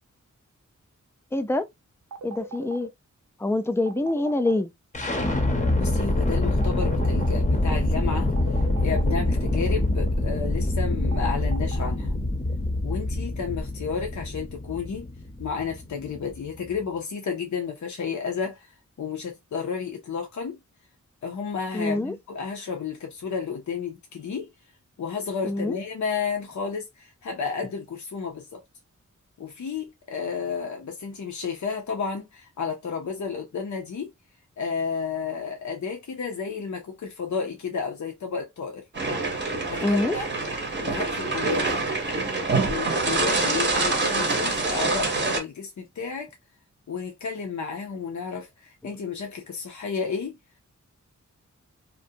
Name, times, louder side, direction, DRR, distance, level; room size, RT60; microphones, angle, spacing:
voice 1, 1.3-1.7 2.2-2.9 3.4-4.7 21.7-22.1 25.4-25.8 39.8-40.1, left 2 dB, 10° left, 0.3 m, -25 dB
sound 1, 2.1-2.9 3.9-4.6 6.6-7.4 8.4-9.1 11.1-11.9, right 4 dB, 75° right, 0.5 m, -39 dB
sound 2, 4.9-16.8, left 1 dB, 25° left, 0.7 m, -25 dB
voice 2, 5.8-8.3 8.6-12.2 12.8-15.1 15.4-18.7 19.0-20.6 21.2-24.5 25.0-28.6 29.4-34.1 34.6-38.8 39.7-40.3 40.8-41.8 42.7-46.3 46.9-50.4, left 6 dB, 70° left, 0.6 m, -32 dB
sound 3, 38.9-45.4, right 3 dB, 35° right, 0.7 m, -25 dB
2.5 x 2.1 x 2.6 m
wide cardioid pair, 90°, 30 cm